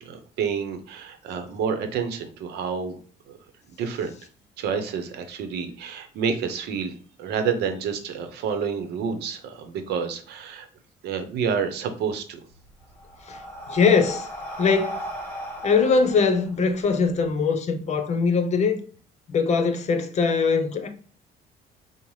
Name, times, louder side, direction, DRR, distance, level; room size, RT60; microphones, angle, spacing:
voice 1, 0.0-3.0 3.3-3.4 3.8-4.2 4.6-10.7 11.0-12.4, right 6 dB, 80° right, 0.7 m, -29 dB
Breathing, 12.5-17.2, equal, 10° left, 1.3 m, -36 dB
voice 2, 13.7-14.3 14.6-15.0 15.6-18.8 19.3-20.9, left 5 dB, 40° left, 0.7 m, -21 dB
5.3 x 2.1 x 3.1 m
cardioid pair, 110°, 17 cm